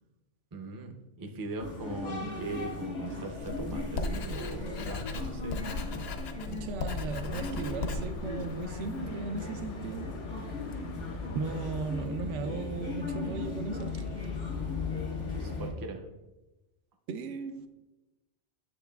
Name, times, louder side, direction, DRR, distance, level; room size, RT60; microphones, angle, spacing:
voice 1, 0.5-5.7 15.4-16.0, right 3 dB, 30° right, 0.4 m, -40 dB
sound 1, 1.6-15.7, left 3 dB, 85° left, 1.7 m, -37 dB
Writing, 3.4-9.1, left 3 dB, 65° left, 0.8 m, -37 dB
voice 2, 6.5-10.2 11.3-14.1 17.1-17.7, right 4 dB, 85° right, 0.9 m, -37 dB
sound 2, 7.1-12.1, left 3 dB, 50° left, 0.4 m, -46 dB
8.1 x 6.9 x 2.3 m
omnidirectional pair, 1.2 m